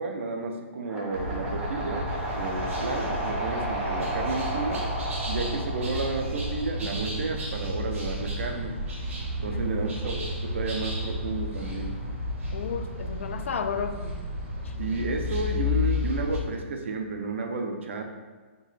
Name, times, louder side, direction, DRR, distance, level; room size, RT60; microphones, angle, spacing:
voice 1, 0.0-2.1 2.3-4.9 5.3-8.8 9.4-12.0 14.8-18.0, right 3 dB, 65° right, 4 dB, 0.6 m, -32 dB
sound 1, 0.8-7.0, right 1 dB, 10° right, 0.6 m, -33 dB
sound 2, 1.1-16.4, left 1 dB, 80° right, 1.2 m, -32 dB
voice 2, 9.5-10.1 12.5-14.3 14.6-14.7, left 6 dB, 75° left, 9 dB, 0.4 m, -34 dB
4.4 x 3.1 x 3.2 m, 1.4 s
hypercardioid pair, 170°, 7 cm